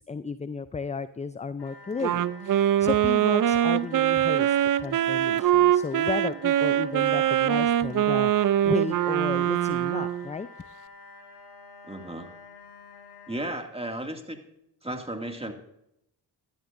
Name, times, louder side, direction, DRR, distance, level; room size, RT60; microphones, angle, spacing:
voice 1, 0.1-10.5, left 5 dB, 15° left, 14 dB, 0.4 m, -33 dB
sound 1, 1.6-13.5, left 3 dB, 65° left, 4.4 m, -48 dB
Wind instrument woodwind instrument, 2.0-10.3, right 11 dB, 50° right, 0.5 m, -23 dB
voice 2, 11.8-12.3 13.3-14.4 14.8-15.5, right 1 dB, 15° right, 4 dB, 2.1 m, -34 dB
13.0 x 12.5 x 2.6 m, 0.81 s
supercardioid pair, 50°, 43 cm